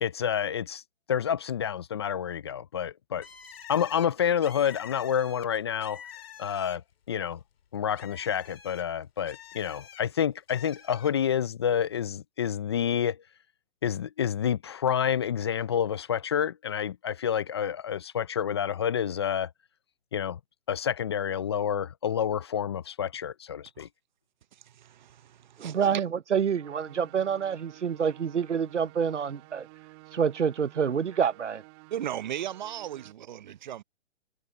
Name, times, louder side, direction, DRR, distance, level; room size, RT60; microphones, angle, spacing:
voice 1, 0.0-0.8 1.1-3.3 3.7-6.0 6.4-6.8 7.1-7.4 7.7-13.2 13.8-19.5 20.1-20.4 20.7-23.9, left 8 dB, 25° left, 0.5 m, -28 dB
Bird, 3.2-7.0 7.4-10.0 10.5-11.1, left 9 dB, 60° left, 2.3 m, -47 dB
voice 2, 24.5-26.0 31.9-33.8, right 11 dB, 40° right, 0.8 m, -37 dB
voice 3, 25.6-29.7 30.1-31.6, right 7 dB, 90° right, 0.9 m, -27 dB
sound 1, 26.5-33.1, right 25 dB, 25° right, 1.8 m, -52 dB
hypercardioid pair, 150°, 35 cm